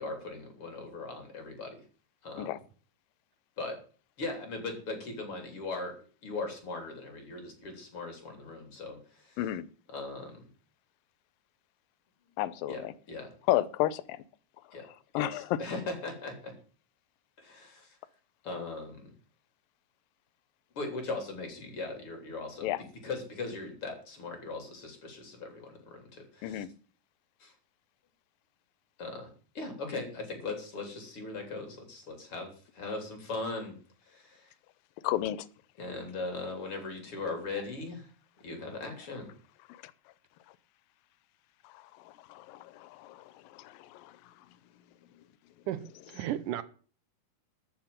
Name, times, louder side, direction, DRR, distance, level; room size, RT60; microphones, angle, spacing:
voice 1, 0.0-1.8 2.2-2.5 3.6-3.8 4.2-5.9 6.2-9.4 9.9-10.5 12.7-12.8 13.1-13.3 14.7-14.9 15.1-16.5 17.4-18.0 18.4-19.1 20.7-22.7 23.0-26.6 27.4-27.5 29.0-33.8 34.1-34.5 35.8-38.1 38.4-39.3, left 3 dB, 40° left, 4.2 m, -39 dB
voice 2, 12.4-12.9 13.5-14.2 14.8-15.6 22.6-22.8 26.4-26.7 35.0-35.5 39.7-39.8 41.6-44.3, left 14 dB, 90° left, 2.5 m, -33 dB
voice 3, 45.7-46.6, right 12 dB, 75° right, 2.3 m, -34 dB
13.5 x 6.6 x 8.9 m
omnidirectional pair, 3.9 m